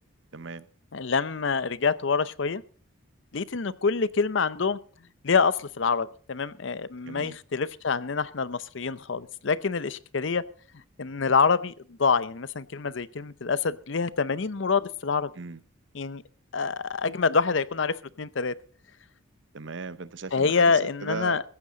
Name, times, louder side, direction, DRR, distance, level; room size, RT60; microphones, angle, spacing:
voice 1, 0.3-0.7 7.1-7.4 15.3-15.6 19.5-21.4, right 4 dB, 60° right, 0.8 m, -37 dB
voice 2, 0.9-2.6 3.3-4.8 5.2-10.4 11.0-11.7 12.0-15.3 15.9-16.2 16.5-18.6 20.3-21.4, left 5 dB, 60° left, 0.7 m, -26 dB
15.5 x 14.0 x 3.9 m
head